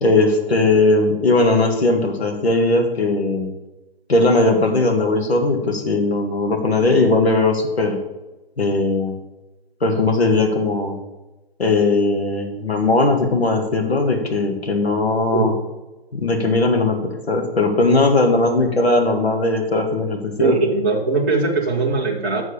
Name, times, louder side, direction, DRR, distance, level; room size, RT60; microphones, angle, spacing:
voice 1, 0.0-3.5 4.1-8.0 8.6-9.1 9.8-11.0 11.6-15.5 16.1-17.0 17.3-20.6, left 2 dB, 80° left, 2 dB, 1.9 m, -18 dB
voice 2, 20.4-22.4, right 3 dB, 10° right, -5 dB, 0.4 m, -20 dB
7.3 x 6.2 x 7.0 m, 1.0 s
figure-of-eight pair, 145°, 31 cm